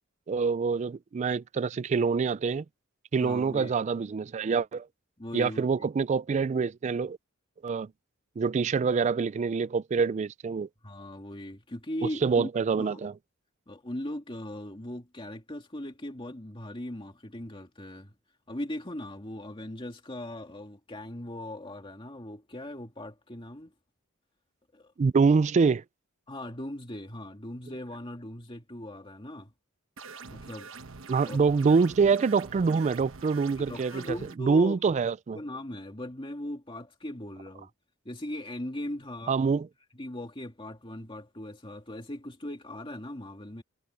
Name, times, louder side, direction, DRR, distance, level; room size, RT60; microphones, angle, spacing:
voice 1, 0.3-2.6 3.1-4.9 5.3-7.2 7.6-7.9 8.4-10.7 12.2-13.1 25.0-25.8 31.1-35.4 39.3-39.7, right 5 dB, 35° right, 0.3 m, -25 dB
voice 2, 3.2-3.7 5.2-5.7 10.8-12.5 12.8-13.1 13.7-18.1 18.5-23.7 24.7-24.9 26.3-29.5 30.3-30.7 31.1-31.4 33.6-35.0 35.3-37.7 38.1-39.5 39.9-43.6, left 1 dB, 25° left, 2.3 m, -39 dB
sound 1, 30.0-34.4, right 4 dB, 75° right, 1.1 m, -45 dB
head